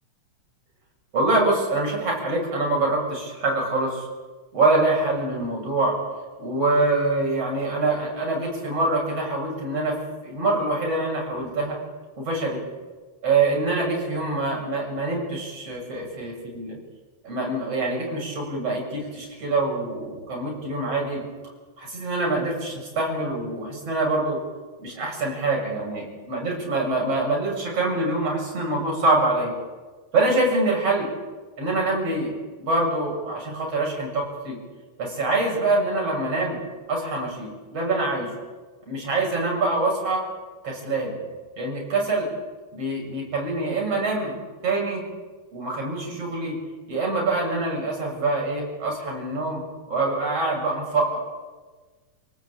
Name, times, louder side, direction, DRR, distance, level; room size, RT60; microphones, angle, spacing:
voice 1, 1.1-4.0 4.5-5.9 6.4-10.0 10.2-11.8 12.2-12.6 13.2-16.8 17.2-21.2 21.8-24.4 24.8-26.0 26.3-29.5 30.1-31.1 31.6-32.3 32.6-34.6 35.0-36.6 36.9-38.3 38.9-40.2 40.6-41.2 41.6-42.3 42.7-44.4 44.6-45.0 45.5-46.6 46.9-49.6 49.9-51.2, right 2 dB, 55° right, -2 dB, 8.5 m, -25 dB
28.5 x 18.5 x 8.8 m, 1.4 s
omnidirectional pair, 3.4 m